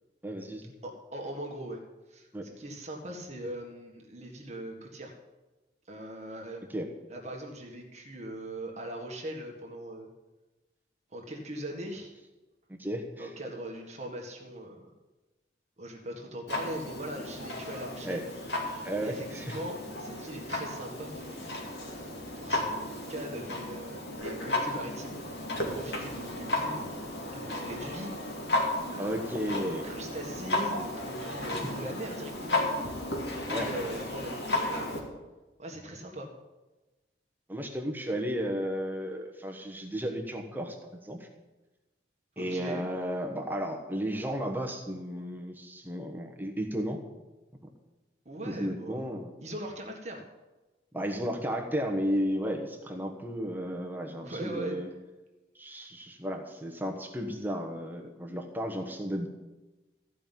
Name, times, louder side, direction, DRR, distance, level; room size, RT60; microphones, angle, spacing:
voice 1, 0.2-0.7 2.3-2.4 6.7-6.9 12.7-13.3 18.0-18.2 18.8-19.6 29.0-29.8 31.6-31.7 33.5-33.7 37.5-41.3 42.4-47.0 48.5-49.3 50.9-54.9 55.5-59.3, equal, 10° right, 2 dB, 1.2 m, -33 dB
voice 2, 0.8-1.8 2.1-2.3 2.6-5.1 5.9-6.6 7.1-10.1 11.1-12.1 13.2-14.8 15.8-18.3 19.0-21.9 22.4-22.7 23.1-25.2 25.5-26.8 27.3-28.1 28.7-28.9 29.5-32.6 33.5-35.0 35.6-36.3 42.4-42.8 48.3-49.0 49.4-50.2 54.2-54.8, right 1 dB, 40° right, 1 dB, 1.7 m, -40 dB
Clock, 16.5-35.0, left 1 dB, 70° left, 2.6 m, -34 dB
14.5 x 5.5 x 9.1 m, 1.1 s
head